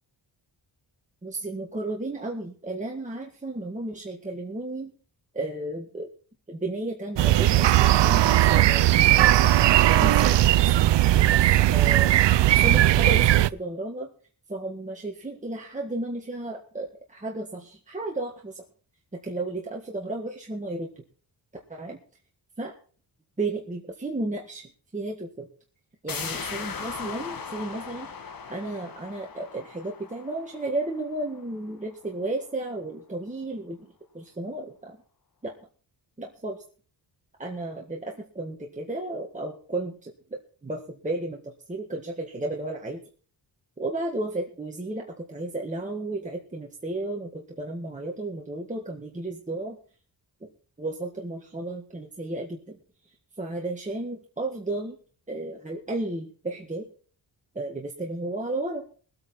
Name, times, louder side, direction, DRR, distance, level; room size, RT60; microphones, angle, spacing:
voice 1, 1.2-4.9 5.3-6.1 6.5-9.4 9.8-11.4 11.7-12.1 12.6-14.1 14.5-18.6 19.2-21.0 21.7-22.0 22.6-22.7 23.4-25.5 26.0-28.1 28.5-33.9 34.1-35.0 35.4-35.5 36.2-36.6 37.4-40.1 40.6-43.0 43.8-49.8 50.4-50.5 50.8-52.8 53.4-55.0 55.3-56.9 57.6-58.8, right 2 dB, 15° right, -1 dB, 1.7 m, -33 dB
sound 1, 7.2-13.5, right 14 dB, 70° right, 0.5 m, -18 dB
sound 2, 26.1-31.6 31.9-32.0, left 6 dB, 50° left, 1.5 m, -38 dB
21.5 x 8.8 x 4.4 m, 0.42 s
wide cardioid pair, 165°, 44 cm